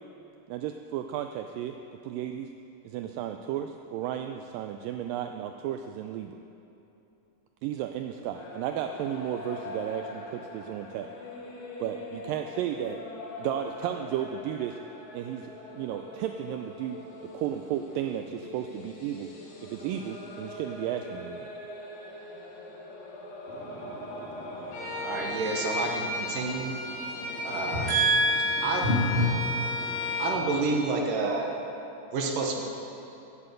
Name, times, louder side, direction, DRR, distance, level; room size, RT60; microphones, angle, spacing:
voice 1, 0.5-1.8 2.0-2.5 2.8-6.4 7.6-11.1 11.8-13.0 13.4-14.8 15.1-19.3 19.6-21.5, right 10 dB, 90° right, 1.9 m, -34 dB
sound 1, 8.3-25.9, left 2 dB, 90° left, 3.9 m, -43 dB
voice 2, 23.5-30.6, equal, 35° left, 1.0 m, -31 dB
Bowed string instrument, 24.7-30.4, left 2 dB, 60° left, 3.6 m, -33 dB
voice 3, 25.0-26.7 27.4-27.9 28.6-28.8 30.2-31.5 32.1-32.6, right 3 dB, 65° right, 2.6 m, -29 dB
13.5 x 7.8 x 8.1 m
omnidirectional pair, 4.5 m